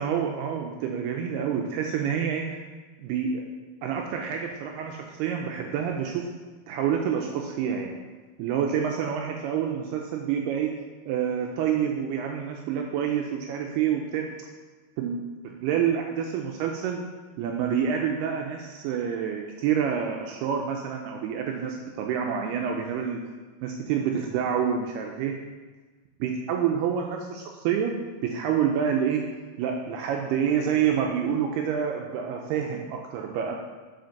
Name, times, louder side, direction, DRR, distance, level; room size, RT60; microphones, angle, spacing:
voice 1, 0.0-2.6 3.0-3.4 3.8-6.3 6.7-7.9 8.4-10.7 11.1-14.3 15.0-15.2 15.4-17.0 17.4-23.2 23.6-25.4 26.2-27.9 28.2-29.3 29.6-33.6, right 8 dB, 80° right, 2 dB, 2.4 m, -27 dB
7.8 x 5.8 x 5.8 m, 1.3 s
omnidirectional pair, 5.1 m